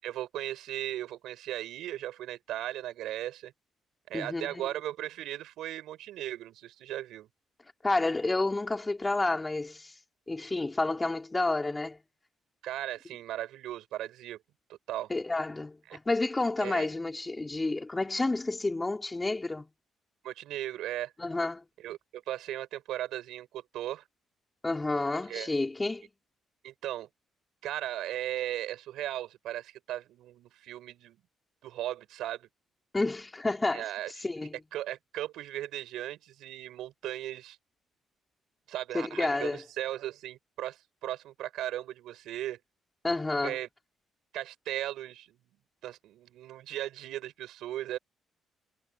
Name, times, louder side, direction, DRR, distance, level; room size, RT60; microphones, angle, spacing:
voice 1, 0.0-3.5 4.1-7.3 12.6-14.4 14.7-15.1 15.9-16.0 16.6-16.9 20.2-21.1 21.8-24.0 25.3-25.5 26.6-27.1 27.6-31.2 31.6-32.5 33.7-34.1 34.7-37.6 38.7-42.6 43.4-43.7 44.3-45.4 45.8-48.0, right 13 dB, 85° right, 7.0 m, -37 dB
voice 2, 4.1-4.7 7.8-9.9 10.3-12.0 15.1-19.7 21.2-21.6 24.6-26.1 32.9-33.9 34.2-34.6 38.9-39.6 43.0-43.6, left 2 dB, 20° left, 5.3 m, -30 dB
cardioid pair, 90°, 0 cm